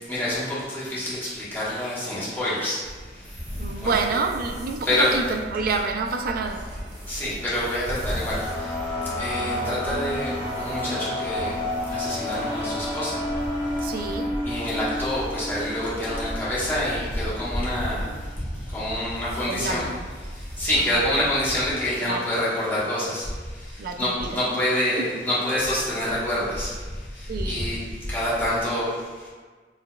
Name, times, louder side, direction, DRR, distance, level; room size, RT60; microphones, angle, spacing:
voice 1, 0.1-2.8 3.8-3.9 4.8-5.1 7.1-8.4 9.2-10.3 10.6-11.6 11.9-13.2 14.4-18.0 18.7-19.9 20.6-23.3 24.0-26.7 27.4-27.8 28.1-28.9, left 1 dB, 10° left, -10 dB, 1.2 m, -26 dB
sound 1, 2.8-21.7, equal, 25° right, 1.2 m, -39 dB
voice 2, 3.6-6.8 13.8-14.3 18.8-18.9 19.2-20.0 20.8-21.0 22.0-22.3 23.8-24.4 25.0-25.1 27.3-27.7, right 4 dB, 55° right, 4 dB, 0.3 m, -29 dB
sound 2, 7.4-17.6, left 1 dB, 35° left, 1.0 m, -31 dB
4.7 x 3.1 x 2.3 m, 1.5 s
head